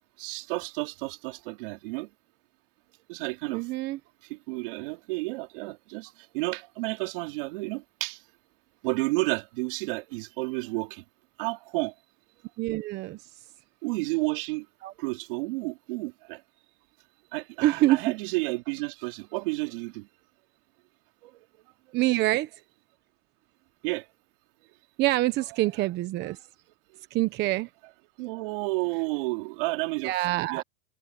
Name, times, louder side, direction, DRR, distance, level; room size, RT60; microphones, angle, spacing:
voice 1, 0.2-2.1 3.1-3.7 4.3-8.2 8.8-11.0 11.4-11.9 13.8-14.6 15.0-16.4 17.3-20.1 21.2-21.3 23.8-24.0 26.2-26.3 28.2-30.1 30.5-30.6, right 25 dB, 60° right, 2.9 m, -31 dB
voice 2, 3.5-4.0 12.6-13.3 14.8-14.9 17.6-18.0 21.9-22.6 25.0-26.4 27.1-27.7 30.0-30.6, right 17 dB, 35° right, 1.0 m, -26 dB
supercardioid pair, 140°, 31 cm